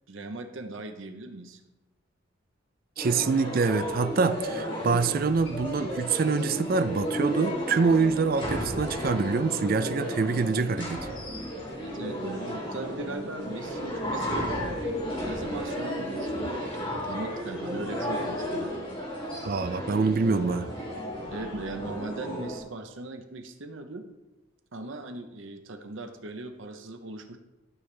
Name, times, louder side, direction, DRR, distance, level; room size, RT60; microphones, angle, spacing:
voice 1, 0.1-1.6 11.7-14.9 15.3-18.7 21.3-24.0 24.7-27.4, right 2 dB, 70° right, 1.0 m, -39 dB
sound 1, 3.0-22.6, equal, 25° left, 3.2 m, -33 dB
voice 2, 3.0-11.1 19.4-20.7, right 4 dB, 45° right, 0.4 m, -25 dB
12.5 x 7.1 x 3.4 m
head